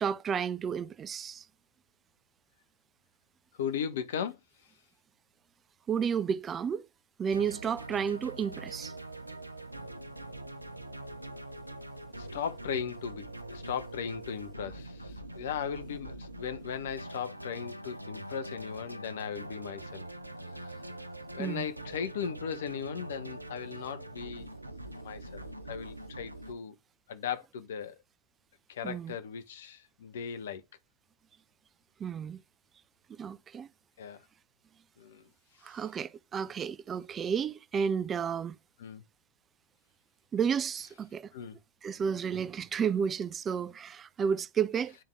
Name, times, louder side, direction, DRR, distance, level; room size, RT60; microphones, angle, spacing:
voice 1, 0.0-1.4 5.9-6.8 7.2-8.9 21.4-21.7 28.8-29.1 32.0-32.4 33.2-33.7 35.6-38.6 40.3-41.3 41.8-45.0, right 7 dB, 25° right, 0.3 m, -32 dB
voice 2, 3.6-4.4 12.2-20.1 20.6-20.8 21.3-24.5 24.9-26.7 27.1-28.0 28.7-30.6 34.0-34.2 35.0-35.3 35.7-35.8 38.8-39.0 41.3-41.6, left 7 dB, 60° left, 0.8 m, -37 dB
sound 1, 7.3-26.5, right 1 dB, 85° right, 0.5 m, -44 dB
10.0 x 3.6 x 3.3 m
figure-of-eight pair, 90°, 0 cm